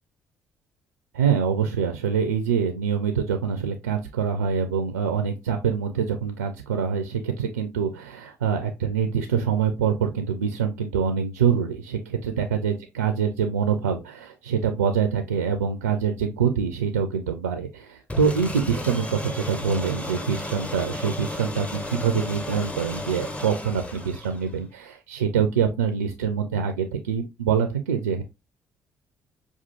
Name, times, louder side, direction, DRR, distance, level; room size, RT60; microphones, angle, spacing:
voice 1, 1.1-28.2, right 7 dB, 80° right, 6 dB, 0.4 m, -25 dB
sound 1, 18.1-24.6, left 1 dB, 15° left, 0.8 m, -34 dB
5.5 x 2.4 x 2.7 m, 0.24 s
figure-of-eight pair, 45°, 8 cm